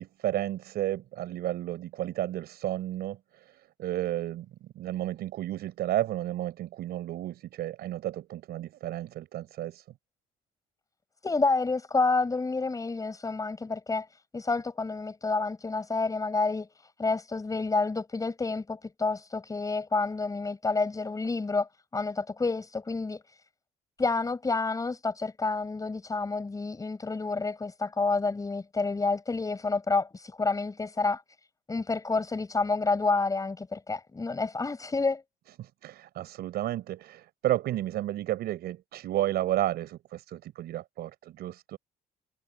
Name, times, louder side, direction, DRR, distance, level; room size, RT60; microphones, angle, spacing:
voice 1, 0.0-9.8 35.6-41.8, right 13 dB, 70° right, 5.1 m, -32 dB
voice 2, 11.2-23.4 24.0-31.2 31.7-35.2, left 3 dB, 20° left, 6.0 m, -29 dB
cardioid pair, 110°, 17 cm